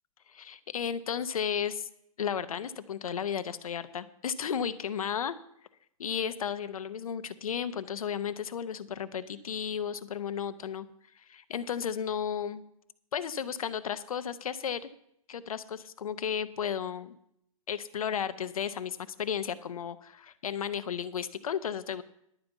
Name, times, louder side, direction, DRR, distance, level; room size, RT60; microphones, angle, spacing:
voice 1, 0.3-1.9 2.2-5.4 6.0-10.9 11.3-12.6 13.1-14.9 15.3-17.1 17.7-22.0, left 8 dB, 80° left, 13 dB, 0.8 m, -34 dB
11.0 x 5.3 x 8.1 m, 0.73 s
hypercardioid pair, 135°, 18 cm